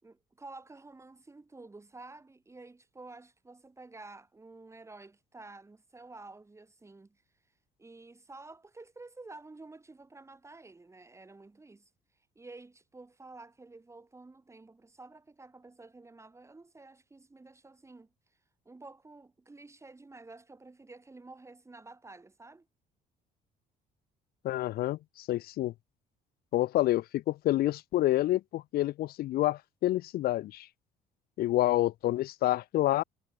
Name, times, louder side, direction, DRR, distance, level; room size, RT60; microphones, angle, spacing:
voice 1, 0.0-7.2 7.8-11.9 12.4-18.4 18.6-22.7, right 3 dB, 15° right, 4.5 m, -51 dB
voice 2, 24.4-25.7 26.5-30.7 31.4-33.0, left 15 dB, 65° left, 0.6 m, -28 dB
cardioid pair, 110°, 17 cm